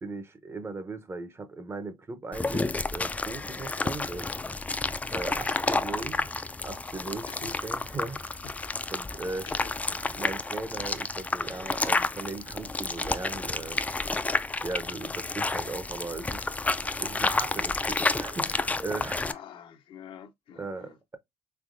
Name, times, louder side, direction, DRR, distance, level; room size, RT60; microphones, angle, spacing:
voice 1, 0.0-4.3 5.1-6.3 6.6-8.4 8.9-9.5 10.2-13.8 14.2-16.4 17.0-19.3 20.6-21.2, right 3 dB, 25° right, 0.7 m, -38 dB
sound 1, 2.3-19.3, left 3 dB, 15° left, 0.3 m, -30 dB
voice 2, 5.5-6.3 7.3-7.5 7.9-8.0 8.4-9.7 11.5-11.8 19.3-21.0, left 9 dB, 70° left, 0.6 m, -48 dB
3.5 x 3.3 x 2.5 m
cardioid pair, 90°, 9 cm